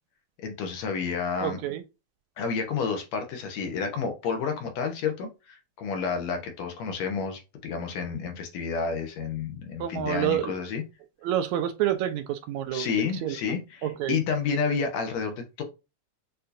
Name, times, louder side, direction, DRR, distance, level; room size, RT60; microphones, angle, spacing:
voice 1, 0.4-1.6 2.4-10.8 12.7-15.6, left 5 dB, 70° left, 2.0 m, -30 dB
voice 2, 1.4-1.8 9.8-10.5 11.2-12.9 13.2-13.4 13.8-14.1, right 11 dB, 80° right, 1.9 m, -28 dB
6.7 x 2.8 x 2.5 m
omnidirectional pair, 3.4 m